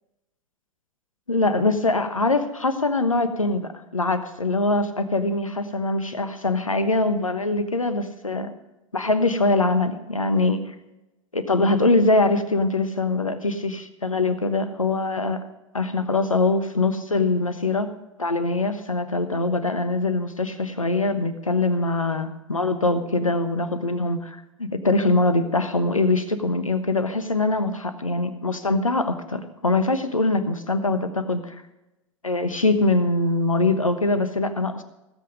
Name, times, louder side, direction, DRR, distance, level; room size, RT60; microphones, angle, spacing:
voice 1, 1.3-8.5 8.9-10.6 11.3-15.4 15.7-17.9 18.2-31.5 32.2-34.8, left 2 dB, 90° left, 10 dB, 1.2 m, -23 dB
16.5 x 8.1 x 5.2 m, 0.98 s
figure-of-eight pair, 90°, 17 cm